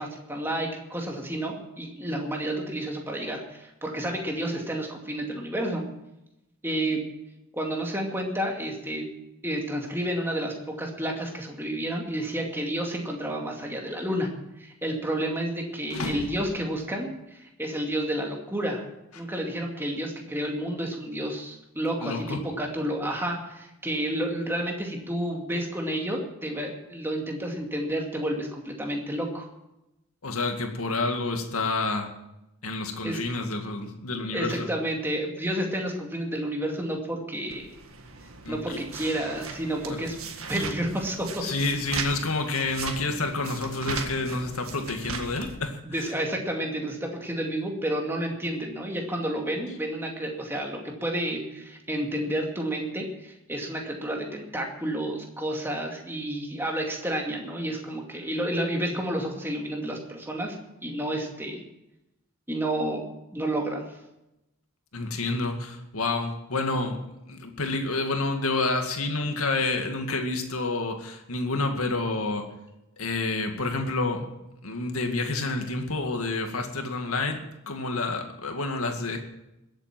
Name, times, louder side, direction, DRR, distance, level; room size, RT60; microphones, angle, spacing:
voice 1, 0.0-5.8 6.6-7.0 7.5-9.0 9.4-14.3 14.6-18.8 19.2-29.5 33.0-33.2 34.3-37.8 38.5-40.2 40.5-41.5 45.8-60.6 60.8-61.6 62.5-63.0 63.3-63.8, right 1 dB, 10° right, 1 dB, 2.3 m, -30 dB
voice 2, 15.9-16.3 22.0-22.5 30.2-32.1 32.6-34.7 38.4-38.8 39.9-40.0 41.4-46.1 64.9-72.5 73.0-74.3 74.6-79.2, left 3 dB, 90° left, 5 dB, 2.2 m, -29 dB
sound 1, 37.5-45.6, right 4 dB, 80° right, 1.9 m, -38 dB
21.5 x 8.3 x 6.0 m, 0.90 s
head